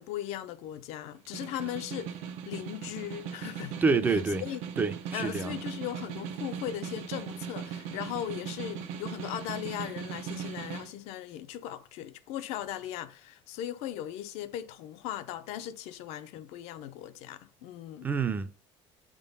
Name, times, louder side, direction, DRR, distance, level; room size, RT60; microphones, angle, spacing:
voice 1, 0.0-3.8 4.1-4.6 5.1-18.1, left 12 dB, 75° left, 0.7 m, -38 dB
Snare drum, 1.1-10.9, right 8 dB, 85° right, 1.0 m, -39 dB
voice 2, 3.8-4.4 4.8-5.6 18.0-18.5, right 4 dB, 15° right, 0.5 m, -27 dB
7.2 x 3.8 x 5.3 m
cardioid pair, 170°, 11 cm